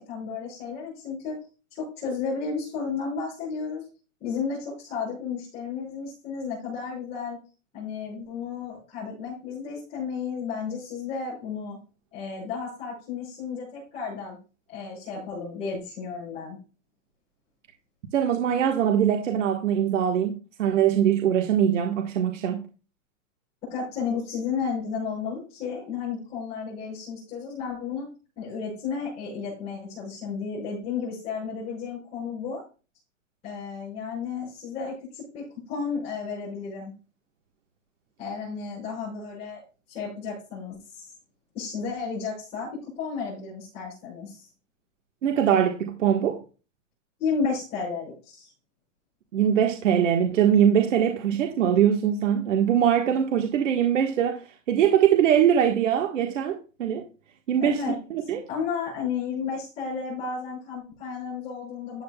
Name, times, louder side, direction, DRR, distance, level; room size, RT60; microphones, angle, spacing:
voice 1, 0.0-1.4 1.7-3.8 4.2-7.4 7.7-11.8 12.1-14.4 14.7-16.6 23.7-28.1 28.4-32.6 33.4-36.9 38.2-39.6 39.9-41.1 41.5-44.5 47.2-48.5 57.6-58.0 58.2-62.0, left 5 dB, 15° left, 5.9 m, -33 dB
voice 2, 18.1-22.6 45.2-46.4 49.3-54.4 54.7-57.0 57.5-58.5, right 9 dB, 70° right, 1.6 m, -22 dB
13.0 x 8.7 x 2.3 m
supercardioid pair, 180°, 38 cm